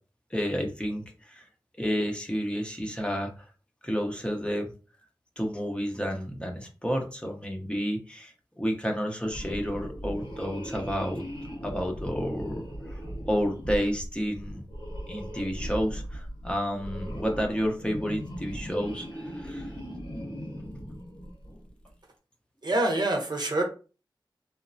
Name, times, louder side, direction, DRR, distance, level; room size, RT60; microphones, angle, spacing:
voice 1, 0.3-1.5 1.8-3.5 3.8-4.7 5.4-11.2 11.6-13.0 13.3-14.6 15.1-19.7 20.1-20.2, equal, 10° left, 0.7 m, -30 dB
sound 1, 9.2-21.7, equal, 75° left, 1.4 m, -38 dB
voice 2, 22.6-23.6, right 2 dB, 55° right, 0.7 m, -26 dB
3.0 x 2.0 x 2.6 m
cardioid pair, 45°, 9 cm